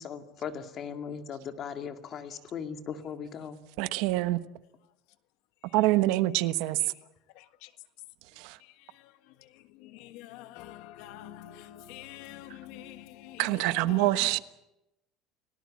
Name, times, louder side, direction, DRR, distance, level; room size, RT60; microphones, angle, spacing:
voice 1, 0.0-3.6, left 7 dB, 35° left, 2.2 m, -38 dB
voice 2, 3.8-4.4 5.7-6.8 8.4-8.6 13.4-14.4, right 17 dB, 70° right, 1.1 m, -25 dB
voice 3, 7.4-7.7 9.8-14.4, left 13 dB, 70° left, 1.5 m, -45 dB
30.0 x 18.0 x 8.6 m
cardioid pair, 160°, 0 cm